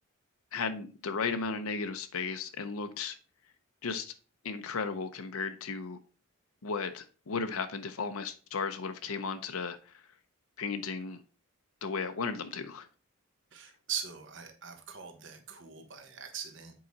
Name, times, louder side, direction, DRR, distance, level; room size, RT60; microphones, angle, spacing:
voice 1, 0.5-3.2 3.8-4.1 4.4-6.0 6.6-10.0 10.6-11.2 11.8-12.9, left 5 dB, 75° left, 0.6 m, -35 dB
voice 2, 13.5-16.7, right 8 dB, 55° right, 1.2 m, -41 dB
7.7 x 4.8 x 4.0 m
head